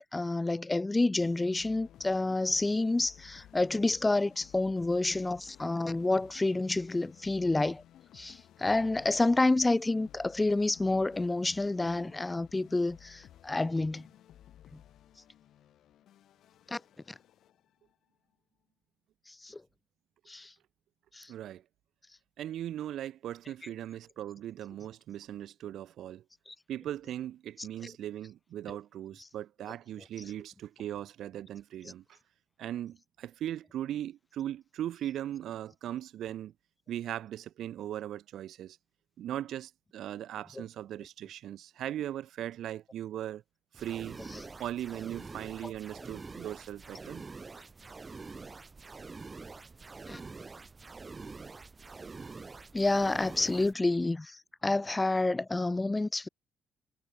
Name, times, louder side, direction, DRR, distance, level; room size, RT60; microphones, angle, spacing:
voice 1, 0.0-7.8 8.1-14.1 16.7-16.8 19.4-19.6 20.3-20.5 21.1-21.3 26.5-26.6 45.6-45.7 50.1-50.2 52.7-56.3, left 2 dB, 15° left, 0.3 m, -29 dB
sound 1, 1.2-17.9, left 11 dB, 75° left, 7.2 m, -56 dB
voice 2, 21.3-21.6 22.4-26.2 26.7-32.2 32.6-36.5 36.9-38.8 39.2-43.4 43.8-44.2 44.6-47.2, right 11 dB, 75° right, 0.8 m, -39 dB
sound 2, 43.7-53.7, right 4 dB, 30° right, 3.2 m, -46 dB
cardioid pair, 90°, 0 cm